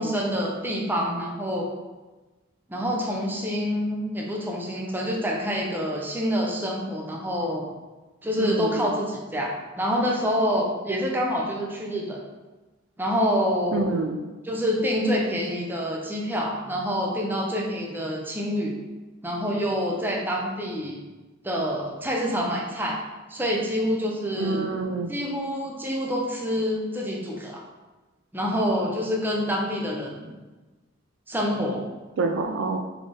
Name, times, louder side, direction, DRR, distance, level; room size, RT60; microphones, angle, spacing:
voice 1, 0.0-1.7 2.7-7.7 8.2-12.2 13.0-14.0 14.4-18.7 19.2-21.0 21.4-23.0 23.3-24.7 25.1-27.6 28.3-30.3 31.3-31.9, equal, 10° right, -2 dB, 0.5 m, -27 dB
voice 2, 8.4-8.9 13.7-14.2 24.3-25.1 32.2-32.8, right 3 dB, 70° right, 6 dB, 0.4 m, -27 dB
3.8 x 3.6 x 3.4 m, 1.2 s
head